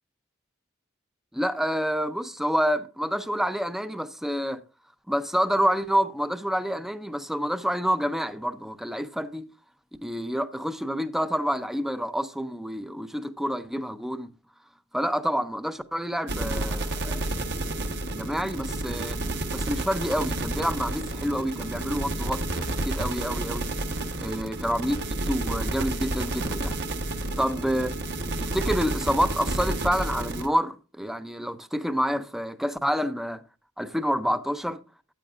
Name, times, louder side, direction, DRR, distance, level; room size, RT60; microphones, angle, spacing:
voice 1, 1.3-4.6 5.1-9.5 10.0-14.3 14.9-17.3 18.1-19.2 19.5-23.7 24.2-25.0 25.3-26.7 27.4-27.9 28.4-33.4 33.8-34.8, equal, ahead, 0.6 m, -28 dB
sound 1, 16.3-30.5, right 2 dB, 50° right, 1.2 m, -30 dB
13.5 x 9.0 x 2.5 m
head